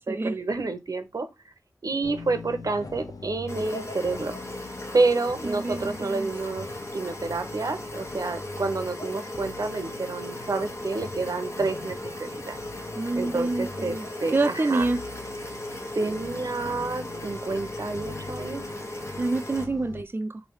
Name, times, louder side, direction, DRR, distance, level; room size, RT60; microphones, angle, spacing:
voice 1, 0.1-1.3 1.8-4.4 4.9-6.7 6.9-12.6 13.2-14.9 15.9-18.6, right 3 dB, 85° right, 0.6 m, -29 dB
sound 1, 2.0-20.0, left 4 dB, 90° left, 0.5 m, -43 dB
sound 2, 3.5-19.6, left 1 dB, 55° left, 1.0 m, -37 dB
voice 2, 5.4-6.3 13.0-14.1 14.3-15.0 19.2-20.4, right 2 dB, 35° right, 0.3 m, -27 dB
3.2 x 2.7 x 4.5 m
wide cardioid pair, 45°, 6 cm